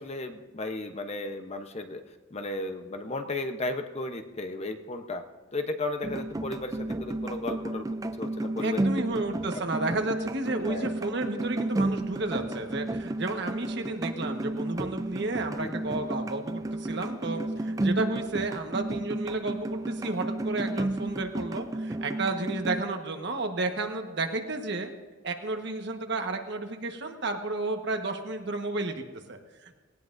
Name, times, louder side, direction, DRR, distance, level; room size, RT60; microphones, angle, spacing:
voice 1, 0.0-2.0 2.3-5.2 5.5-9.2 9.5-9.6 10.6-11.0 15.5-15.8, left 2 dB, 35° left, 6 dB, 0.9 m, -35 dB
sound 1, 6.0-22.8, right 2 dB, 20° right, 0.4 m, -32 dB
voice 2, 8.6-24.9 25.2-29.7, right 2 dB, 65° right, 4 dB, 1.3 m, -32 dB
18.0 x 18.0 x 2.6 m, 1.3 s
head